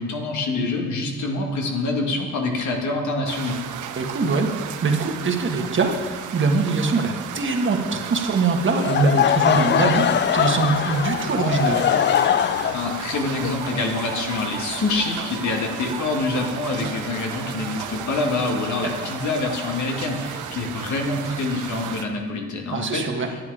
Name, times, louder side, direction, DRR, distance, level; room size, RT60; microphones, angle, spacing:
voice 1, 0.0-3.6 12.7-23.4, left 3 dB, 70° left, 2 dB, 1.9 m, -26 dB
sound 1, 3.3-22.1, right 9 dB, 85° right, 0.8 m, -35 dB
voice 2, 4.0-11.8 18.8-18.9 22.7-23.3, right 4 dB, 40° right, 3 dB, 1.5 m, -23 dB
Laughter / Crowd, 8.7-14.7, left 9 dB, 40° left, 0.4 m, -22 dB
sound 2, 13.0-20.8, right 2 dB, 20° right, 2.0 m, -39 dB
10.0 x 9.5 x 4.9 m, 1.4 s
cardioid pair, 90°, 30 cm